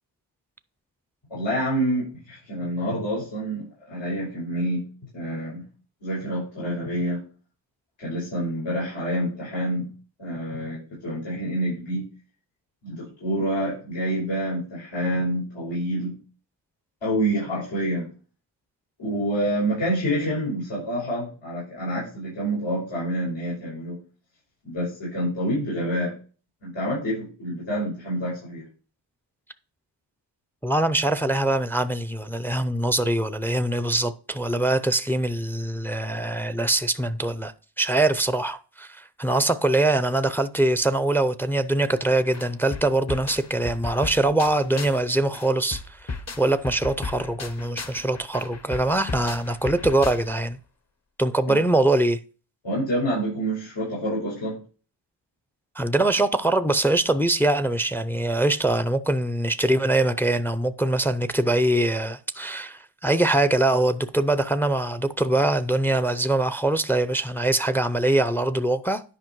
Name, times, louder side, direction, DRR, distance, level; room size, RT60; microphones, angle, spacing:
voice 1, 1.3-4.8 5.1-5.6 6.0-7.2 8.0-9.9 10.2-12.0 12.8-16.2 17.0-18.1 19.0-24.0 24.6-26.1 26.6-28.6 51.5-51.6 52.6-54.5, equal, 85° left, 5.6 m, -27 dB
voice 2, 30.6-46.0 46.4-50.6 51.2-52.2 55.8-69.0, right 2 dB, 5° left, 0.4 m, -23 dB
sound 1, 42.0-42.1 42.3-45.1 45.3-50.5, left 4 dB, 35° left, 0.9 m, -35 dB
10.0 x 5.3 x 4.6 m
wide cardioid pair, 120°, 44 cm